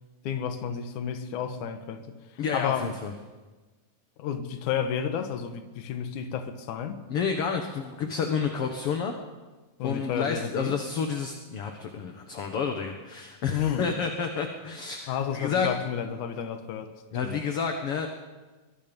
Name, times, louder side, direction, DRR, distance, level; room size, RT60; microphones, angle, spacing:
voice 1, 0.2-2.1 2.5-2.9 4.2-7.0 9.8-10.8 13.5-13.9 15.1-16.9 17.2-17.4, left 8 dB, 70° left, 8 dB, 2.8 m, -31 dB
voice 2, 2.4-3.1 7.1-9.1 9.8-15.7 17.1-18.1, left 6 dB, 55° left, 4 dB, 2.1 m, -30 dB
24.0 x 22.0 x 5.4 m, 1.2 s
omnidirectional pair, 3.7 m